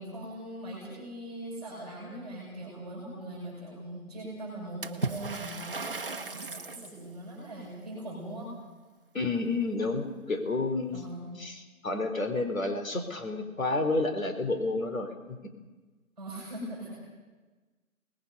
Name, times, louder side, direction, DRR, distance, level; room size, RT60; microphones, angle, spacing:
voice 1, 0.0-8.5 10.9-11.3 16.2-17.1, right 1 dB, ahead, -6 dB, 6.6 m, -41 dB
Water / Splash splatter, 4.8-6.9, right 3 dB, 40° right, 1.1 m, -36 dB
voice 2, 9.1-11.0 11.4-15.1, left 2 dB, 65° left, 5 dB, 3.7 m, -30 dB
29.5 x 20.5 x 5.4 m, 1.2 s
hypercardioid pair, 180°, 43 cm